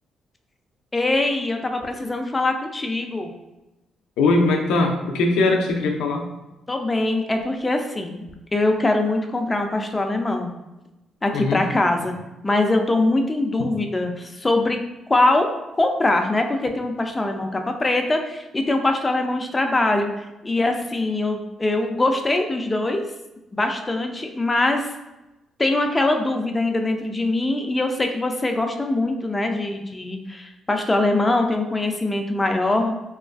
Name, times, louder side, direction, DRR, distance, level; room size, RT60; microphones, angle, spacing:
voice 1, 0.9-3.3 6.7-8.2 8.5-10.5 11.2-12.1 12.4-14.8 15.1-23.0 23.5-24.9 25.6-33.0, left 2 dB, 20° left, 4 dB, 0.3 m, -22 dB
voice 2, 4.2-6.3 11.3-11.6, left 2 dB, 90° left, 3 dB, 0.4 m, -20 dB
2.9 x 2.3 x 2.4 m, 1.0 s
cardioid pair, 90°, 0 cm